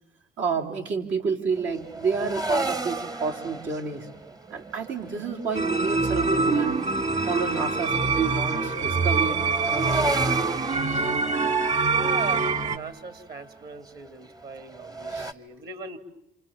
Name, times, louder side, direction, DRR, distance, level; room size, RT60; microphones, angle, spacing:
voice 1, 0.4-4.1 4.5-6.8 7.3-10.4 10.9-11.1 15.1-15.3, right 5 dB, 75° right, 0 dB, 3.8 m, -29 dB
sound 1, 1.5-15.3, right 2 dB, 20° right, 1.0 m, -35 dB
sound 2, 5.5-12.8, right 4 dB, 35° right, 2.0 m, -24 dB
voice 2, 11.9-16.0, right 4 dB, 50° right, 10 dB, 2.9 m, -39 dB
28.0 x 28.0 x 7.4 m, 0.79 s
cardioid pair, 90°, 20 cm